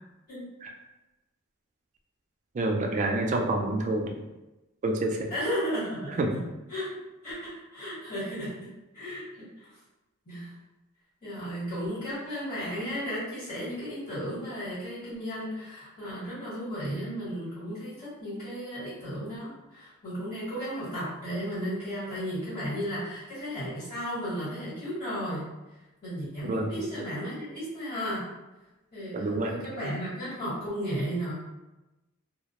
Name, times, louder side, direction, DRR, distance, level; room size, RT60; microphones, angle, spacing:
voice 1, 2.5-4.2 4.8-5.3 6.2-6.3 26.4-26.7 29.1-29.5, right 2 dB, 35° right, 2 dB, 0.3 m, -27 dB
voice 2, 5.3-6.4 6.7-6.9 7.2-9.7 10.2-10.5 11.2-25.5 26.0-28.3 28.9-31.3, equal, 45° left, -12 dB, 1.4 m, -34 dB
2.3 x 2.0 x 2.8 m, 1.0 s
head